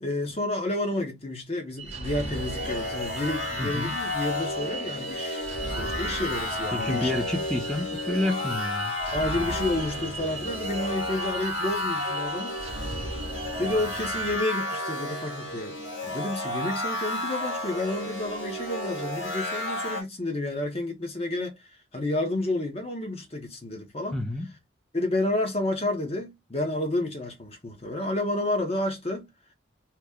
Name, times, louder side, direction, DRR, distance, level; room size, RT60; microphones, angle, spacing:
voice 1, 0.0-7.2 9.1-12.6 13.6-15.8 16.0-24.2 24.9-29.3, left 2 dB, 30° left, 0.9 m, -30 dB
sound 1, 1.8-14.4, right 3 dB, 35° right, 0.8 m, -37 dB
sound 2, 2.1-20.0, left 1 dB, 80° left, 1.3 m, -32 dB
voice 2, 3.6-3.9 6.7-8.9 24.1-24.5, left 2 dB, 5° left, 0.6 m, -29 dB
2.9 x 2.2 x 3.5 m
head